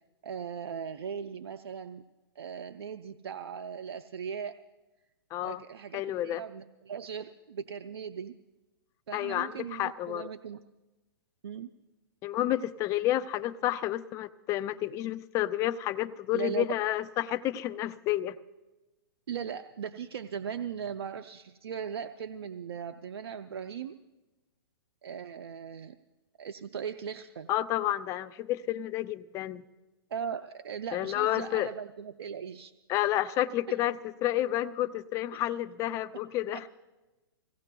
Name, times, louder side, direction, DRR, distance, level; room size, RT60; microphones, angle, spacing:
voice 1, 0.2-2.0 2.4-4.6 5.4-8.3 9.1-10.6 11.4-11.7 16.3-16.7 19.3-24.0 25.0-26.0 26.4-27.5 30.1-32.7 33.7-33.8 35.3-35.4 36.1-36.2 36.5-36.6, right 7 dB, 80° right, 9 dB, 0.5 m, -38 dB
voice 2, 5.3-5.6 5.9-6.4 9.1-10.3 12.2-18.4 27.5-29.6 30.9-31.7 32.9-36.6, left 13 dB, 25° left, 13 dB, 0.4 m, -30 dB
24.5 x 17.0 x 2.3 m, 1.1 s
hypercardioid pair, 135°, 13 cm